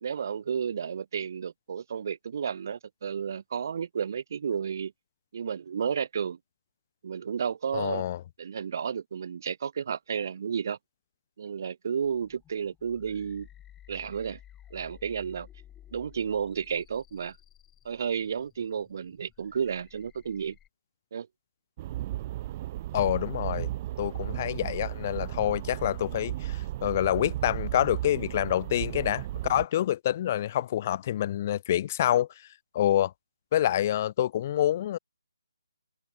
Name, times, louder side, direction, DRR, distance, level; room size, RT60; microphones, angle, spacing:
voice 1, 0.0-4.9 5.3-6.4 7.0-8.1 8.4-10.8 11.4-13.5 13.9-14.4 14.7-15.5 15.9-17.4 17.8-20.6 21.1-21.3, right 7 dB, 50° right, 2.2 m, -32 dB
voice 2, 7.7-8.2 22.9-23.7 24.0-32.3 32.7-33.1 33.5-35.0, left 12 dB, 35° left, 0.6 m, -27 dB
sound 1, 12.0-20.7, left 11 dB, 10° left, 2.7 m, -54 dB
sound 2, 21.8-29.7, right 14 dB, 30° right, 1.2 m, -35 dB
figure-of-eight pair, 150°, 2 cm